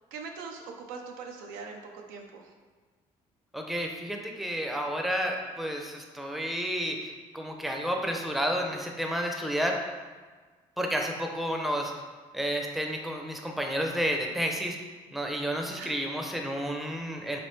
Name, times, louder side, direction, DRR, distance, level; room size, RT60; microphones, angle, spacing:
voice 1, 0.1-2.5 15.7-16.0, right 5 dB, 90° right, 2 dB, 0.5 m, -42 dB
voice 2, 3.5-9.8 10.8-11.9 12.3-14.8 15.1-17.4, equal, ahead, 2 dB, 0.5 m, -31 dB
3.6 x 3.3 x 3.1 m, 1.4 s
supercardioid pair, 75°, 14 cm